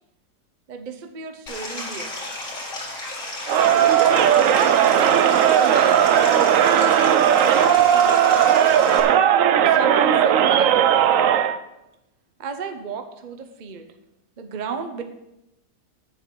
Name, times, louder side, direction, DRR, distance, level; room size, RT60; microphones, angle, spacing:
voice 1, 0.7-2.2 3.7-6.3 6.7-9.1 9.6-11.1 12.4-13.9 14.4-15.0, right 5 dB, 35° right, 7 dB, 0.8 m, -34 dB
Stream, 1.5-9.0, left 2 dB, 50° left, 2.6 m, -33 dB
Crowd, 3.5-11.6, right 9 dB, 65° right, 0.9 m, -17 dB
10.5 x 9.2 x 4.6 m, 0.89 s
omnidirectional pair, 1.7 m